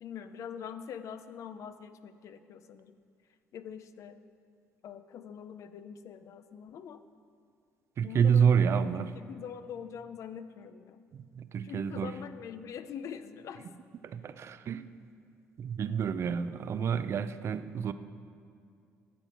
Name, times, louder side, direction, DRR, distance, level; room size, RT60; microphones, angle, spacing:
voice 1, 0.0-3.0 3.5-4.2 4.8-7.0 8.0-11.0 11.6-13.7, left 8 dB, 65° left, 11 dB, 0.6 m, -44 dB
voice 2, 8.0-9.1 11.1-12.1 14.0-14.9 15.6-17.9, right 7 dB, 55° right, 13 dB, 0.5 m, -28 dB
12.5 x 7.5 x 4.4 m, 2.4 s
supercardioid pair, 75°, 6 cm